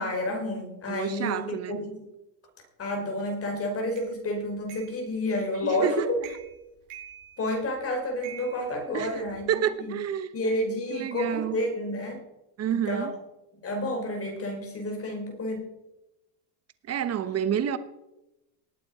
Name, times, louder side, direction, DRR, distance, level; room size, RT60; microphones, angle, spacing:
voice 1, 0.0-2.0 2.8-6.2 7.4-10.0 10.3-12.2 12.7-13.1 13.6-15.6, left 1 dB, 30° left, 4.5 m, -30 dB
voice 2, 0.9-1.8 5.6-6.4 8.9-10.3 10.9-11.6 12.6-13.1 16.9-17.8, right 9 dB, 30° right, 1.1 m, -29 dB
sound 1, 4.0-4.1 4.7-5.0 5.5-5.8 6.2-6.6 6.9-7.7 8.2-9.5, right 9 dB, 70° right, 5.9 m, -46 dB
19.0 x 8.7 x 4.9 m
supercardioid pair, 120°, 47 cm